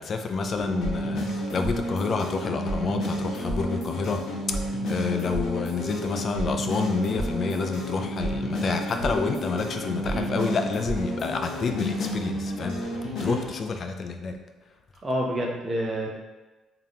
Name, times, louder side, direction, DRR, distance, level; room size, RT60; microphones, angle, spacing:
voice 1, 0.0-12.9 13.2-14.4, left 4 dB, 40° left, 5 dB, 0.4 m, -29 dB
sound 1, 0.6-13.5, equal, 60° left, 1.0 m, -31 dB
voice 2, 10.1-10.5 13.2-13.4 15.0-16.2, equal, 20° right, -1 dB, 0.7 m, -29 dB
3.6 x 2.8 x 3.4 m, 1.2 s
cardioid pair, 130°, 0 cm